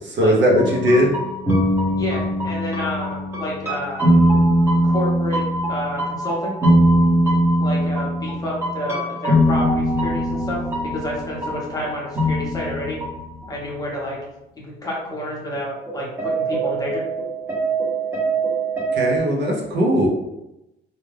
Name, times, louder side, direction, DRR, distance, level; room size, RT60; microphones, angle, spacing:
voice 1, 0.1-1.2 18.9-20.1, equal, 65° right, -1 dB, 0.7 m, -18 dB
sound 1, 0.6-13.7 14.0-14.1 15.5-15.6 15.9-19.2, right 1 dB, 10° right, 0.8 m, -21 dB
voice 2, 2.0-4.1 4.8-6.5 7.6-13.0 13.5-14.2 14.6-17.0, left 1 dB, 20° left, -4 dB, 0.7 m, -29 dB
2.4 x 2.2 x 3.2 m, 0.91 s
cardioid pair, 145°, 20 cm